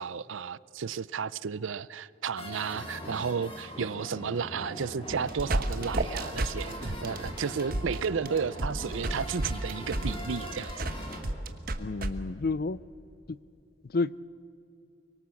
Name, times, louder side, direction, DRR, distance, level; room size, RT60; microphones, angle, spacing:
voice 1, 0.0-10.9, right 6 dB, 85° right, 0.5 m, -33 dB
sound 1, 2.4-11.2, equal, 30° left, 3.9 m, -41 dB
sound 2, 5.1-12.1, right 1 dB, 50° right, 1.2 m, -31 dB
voice 2, 11.8-12.8 13.3-13.4 13.8-14.2, left 3 dB, 50° left, 0.5 m, -30 dB
24.5 x 22.5 x 7.1 m
head